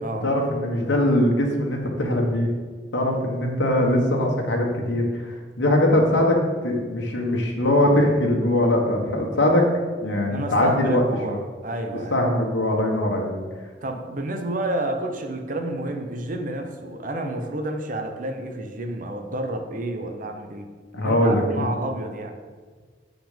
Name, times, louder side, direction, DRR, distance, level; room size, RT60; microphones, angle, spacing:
voice 1, 0.2-2.5 2.9-5.1 5.6-6.4 6.6-9.6 10.0-11.4 12.1-13.3 20.9-21.7, left 1 dB, 85° left, 0 dB, 1.5 m, -21 dB
voice 2, 10.3-12.2 13.8-22.4, right 1 dB, 45° right, 5 dB, 0.9 m, -30 dB
7.8 x 6.0 x 5.2 m, 1.5 s
head